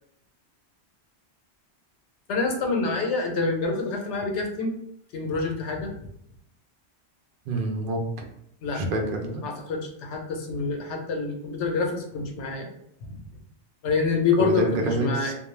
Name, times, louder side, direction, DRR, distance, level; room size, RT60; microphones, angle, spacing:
voice 1, 2.3-4.7 5.1-5.9 8.6-8.8 9.4-12.7 13.1-13.2 13.8-15.3, left 4 dB, 80° left, 2 dB, 0.9 m, -26 dB
voice 2, 7.5-8.3 8.7-9.4 14.4-15.3, right 2 dB, 60° right, 3 dB, 0.6 m, -27 dB
2.3 x 2.1 x 3.0 m, 0.72 s
omnidirectional pair, 1.1 m